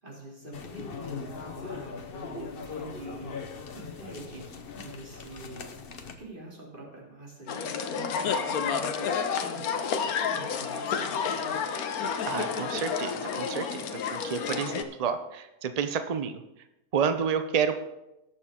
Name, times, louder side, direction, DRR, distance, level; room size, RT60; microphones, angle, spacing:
voice 1, 0.0-5.7 6.2-11.6, right 1 dB, 35° right, -3 dB, 3.0 m, -45 dB
sound 1, 0.5-6.2, left 5 dB, 45° left, 1.0 m, -40 dB
sound 2, 7.5-14.8, left 6 dB, 85° left, 1.3 m, -30 dB
voice 2, 12.3-16.4 16.9-17.7, right 7 dB, 60° right, 9 dB, 0.4 m, -30 dB
18.0 x 6.9 x 3.6 m, 0.92 s
omnidirectional pair, 1.5 m